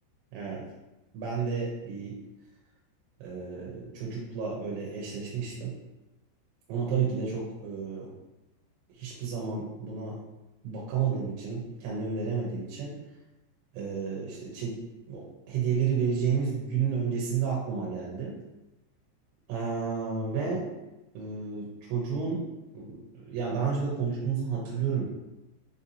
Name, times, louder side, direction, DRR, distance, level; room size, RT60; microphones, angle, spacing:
voice 1, 0.3-0.6 1.1-2.2 3.2-5.7 6.7-8.1 8.9-10.2 10.6-12.9 13.7-18.3 19.5-20.7 21.1-22.4 22.7-25.0, right 6 dB, 85° right, -3 dB, 3.0 m, -31 dB
6.9 x 2.7 x 2.7 m, 0.99 s
omnidirectional pair, 5.2 m